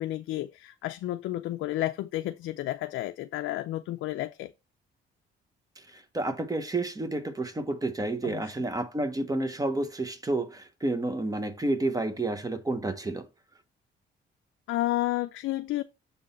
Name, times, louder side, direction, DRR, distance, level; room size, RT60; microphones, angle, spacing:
voice 1, 0.0-4.5 8.2-8.5 14.7-15.8, left 15 dB, 80° left, 0.4 m, -31 dB
voice 2, 5.8-13.2, right 2 dB, 20° right, 1.0 m, -30 dB
6.9 x 3.8 x 4.1 m
cardioid pair, 90°, 20 cm